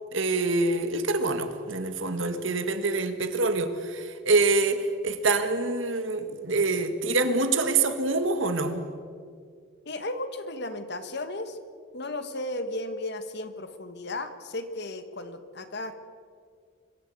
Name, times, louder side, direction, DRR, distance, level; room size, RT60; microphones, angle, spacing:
voice 1, 0.1-8.8, right 3 dB, 70° right, 9 dB, 1.7 m, -26 dB
voice 2, 9.8-11.6 11.9-16.0, left 2 dB, 55° left, 9 dB, 1.5 m, -35 dB
24.0 x 13.5 x 8.6 m, 2.2 s
head